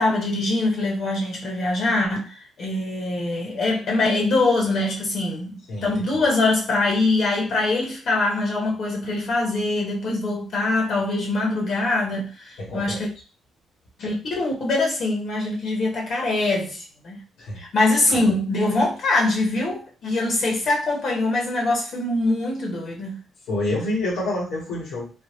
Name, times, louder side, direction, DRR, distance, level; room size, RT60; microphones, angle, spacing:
voice 1, 0.0-13.1 14.0-17.2 17.5-23.2, left 2 dB, 60° left, 1.1 m, -23 dB
voice 2, 12.6-13.0 17.4-17.6 18.1-18.3 23.5-25.1, left 1 dB, 85° left, 1.2 m, -28 dB
3.4 x 2.1 x 3.1 m
cardioid pair, 90°, 0 cm